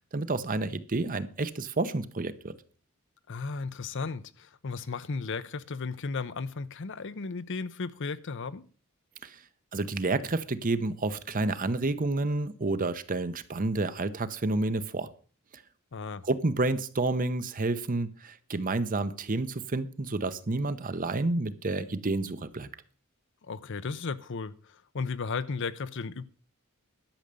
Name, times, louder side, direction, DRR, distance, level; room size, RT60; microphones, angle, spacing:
voice 1, 0.1-2.5 9.2-9.4 9.7-15.1 16.2-22.7, right 2 dB, 40° right, 0.8 m, -29 dB
voice 2, 3.3-8.7 15.9-16.2 23.4-26.2, left 4 dB, 60° left, 0.6 m, -35 dB
12.0 x 6.4 x 6.9 m
head